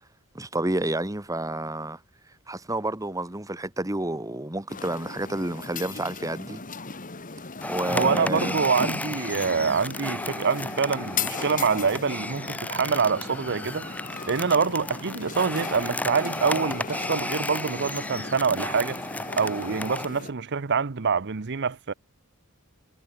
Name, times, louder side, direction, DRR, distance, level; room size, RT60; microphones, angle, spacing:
voice 1, 0.3-2.0 2.5-6.6 7.7-8.6, right 1 dB, 15° right, 1.6 m, -30 dB
sound 1, 4.7-20.3, left 4 dB, 40° left, 2.3 m, -37 dB
sound 2, 7.6-20.1, left 1 dB, 5° left, 2.3 m, -34 dB
voice 2, 7.9-13.9 14.3-19.0 19.4-21.9, right 5 dB, 50° right, 0.8 m, -25 dB
head